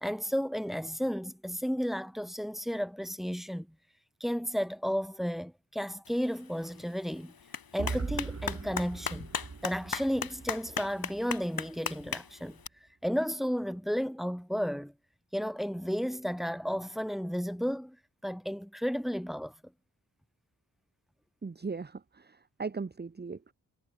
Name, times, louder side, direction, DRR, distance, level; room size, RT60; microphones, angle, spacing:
voice 1, 0.0-3.7 4.2-7.3 7.7-9.3 9.6-12.6 13.0-14.9 15.3-18.0 18.2-19.5, equal, ahead, 1.1 m, -33 dB
Clapping, 6.0-12.7, left 6 dB, 75° left, 4.2 m, -39 dB
sound 1, 7.8-11.7, right 4 dB, 45° right, 2.9 m, -40 dB
voice 2, 21.4-23.5, right 4 dB, 30° right, 1.0 m, -38 dB
cardioid pair, 65°, 36 cm